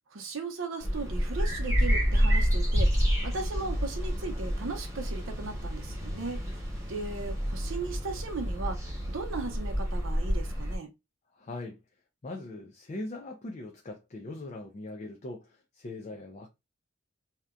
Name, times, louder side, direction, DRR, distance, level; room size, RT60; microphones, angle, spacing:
voice 1, 0.1-2.9 3.2-6.4 6.9-8.8 9.1-10.9, right 3 dB, 75° right, 0.6 m, -37 dB
sound 1, 0.8-10.8, equal, 15° right, 0.9 m, -29 dB
voice 2, 11.3-11.8 12.2-16.5, left 2 dB, 35° left, 0.4 m, -40 dB
2.7 x 2.2 x 2.4 m
head